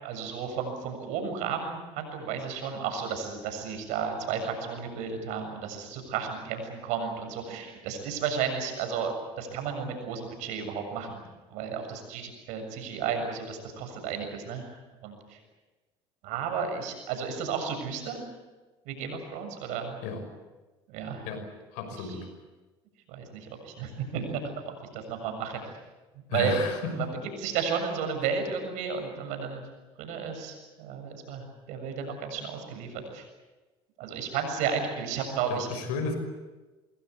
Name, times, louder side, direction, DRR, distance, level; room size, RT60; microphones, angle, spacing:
voice 1, 0.0-11.2 11.5-14.7 15.0-15.4 16.2-18.3 18.9-20.0 20.9-21.2 22.0-22.2 23.1-25.6 26.3-26.6 26.9-27.1 27.4-29.7 30.0-33.3 34.0-35.7, right 6 dB, 75° right, 5 dB, 7.1 m, -33 dB
voice 2, 21.7-22.3 26.3-27.1 35.5-36.2, left 4 dB, 80° left, 8 dB, 5.8 m, -32 dB
27.0 x 21.5 x 8.2 m, 1.2 s
supercardioid pair, 75°, 13 cm